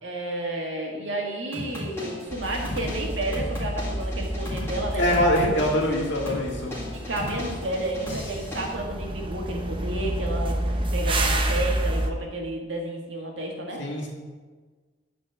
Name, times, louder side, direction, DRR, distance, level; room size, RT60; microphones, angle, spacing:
voice 1, 0.0-5.4 6.9-13.8, right 1 dB, 90° right, 0 dB, 1.8 m, -31 dB
sound 1, 1.5-8.7, left 1 dB, 15° left, 1.9 m, -36 dB
sound 2, 2.3-12.1, right 1 dB, 25° right, 0.7 m, -29 dB
voice 2, 5.0-6.8 13.8-14.1, left 1 dB, 70° left, -1 dB, 2.0 m, -23 dB
9.0 x 4.4 x 7.0 m, 1.4 s
head